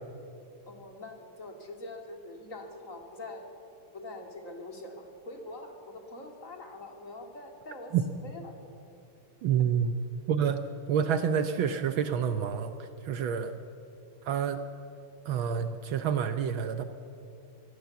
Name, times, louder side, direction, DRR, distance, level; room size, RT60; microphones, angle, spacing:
voice 1, 0.7-3.4 3.9-7.9 8.2-8.5 9.6-9.7 13.4-13.5, left 2 dB, 35° left, 3 dB, 2.8 m, -44 dB
voice 2, 9.4-9.9 10.3-12.7 13.0-13.5 14.3-14.6 15.3-16.8, right 8 dB, 70° right, 9 dB, 1.6 m, -28 dB
24.5 x 16.5 x 8.3 m, 2.6 s
omnidirectional pair, 2.4 m